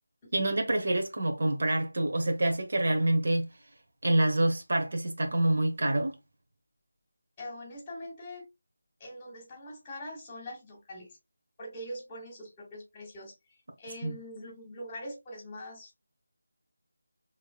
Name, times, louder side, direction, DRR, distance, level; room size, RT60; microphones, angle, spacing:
voice 1, 0.3-3.5 4.0-6.1 14.0-14.2, right 1 dB, 55° right, 1.1 m, -27 dB
voice 2, 7.4-8.5 9.0-11.1 11.6-15.9, left 1 dB, 20° left, 1.8 m, -43 dB
4.9 x 3.2 x 2.3 m
figure-of-eight pair, 165°, 0 cm